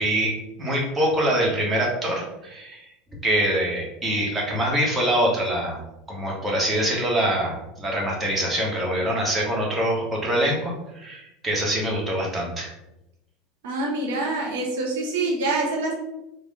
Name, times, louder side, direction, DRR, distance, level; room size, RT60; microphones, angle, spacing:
voice 1, 0.0-2.9 3.2-5.8 6.1-12.7, right 1 dB, 20° right, -3 dB, 1.2 m, -24 dB
voice 2, 13.6-15.9, right 2 dB, 65° right, -2 dB, 0.7 m, -25 dB
3.5 x 2.1 x 3.5 m, 0.89 s
figure-of-eight pair, 75°, 0 cm